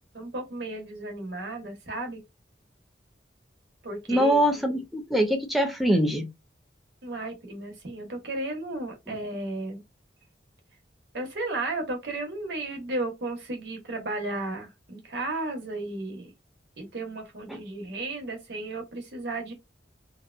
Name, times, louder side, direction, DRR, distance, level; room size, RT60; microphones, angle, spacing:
voice 1, 0.1-2.2 3.8-4.4 7.0-9.8 11.1-16.3 16.8-19.5, right 2 dB, 65° right, 1.0 m, -34 dB
voice 2, 4.1-6.3 9.1-9.2 17.5-17.6, equal, ahead, 0.5 m, -23 dB
2.7 x 2.1 x 2.4 m
head